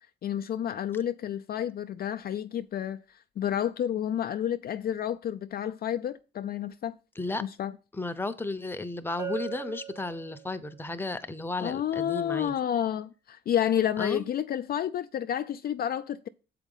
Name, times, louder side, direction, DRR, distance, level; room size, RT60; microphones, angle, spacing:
voice 1, 0.2-7.0 7.4-7.7 11.6-16.3, left 10 dB, 50° left, 0.4 m, -30 dB
voice 2, 7.9-12.5 14.0-14.3, left 2 dB, 10° left, 0.8 m, -34 dB
Bell, 9.2-10.8, right 9 dB, 60° right, 1.5 m, -39 dB
7.2 x 5.0 x 5.4 m
cardioid pair, 90°, 20 cm